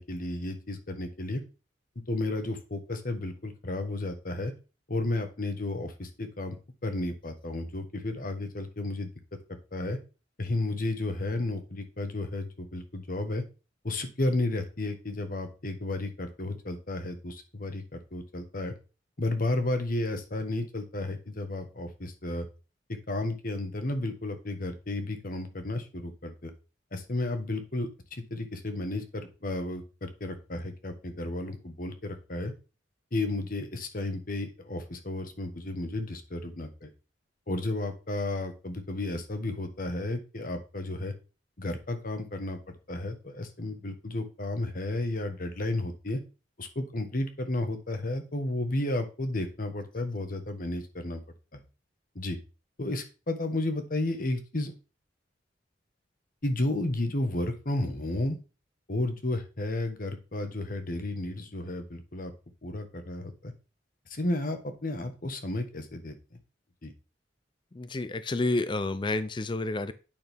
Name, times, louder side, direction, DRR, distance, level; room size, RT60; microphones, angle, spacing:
voice 1, 0.0-1.4 2.1-4.5 4.9-10.0 10.4-13.4 13.8-18.7 19.2-22.5 22.9-26.5 26.9-32.5 33.1-36.9 37.5-41.1 41.6-42.6 42.9-46.2 46.6-51.2 51.5-51.6 52.1-52.4 52.8-54.7 56.4-58.4 58.9-62.3 62.6-63.5 64.1-66.4 66.8-66.9, left 2 dB, 50° left, 7 dB, 1.3 m, -32 dB
voice 2, 67.7-69.9, left 2 dB, 25° left, 13 dB, 0.5 m, -29 dB
8.8 x 6.2 x 3.5 m, 0.32 s
head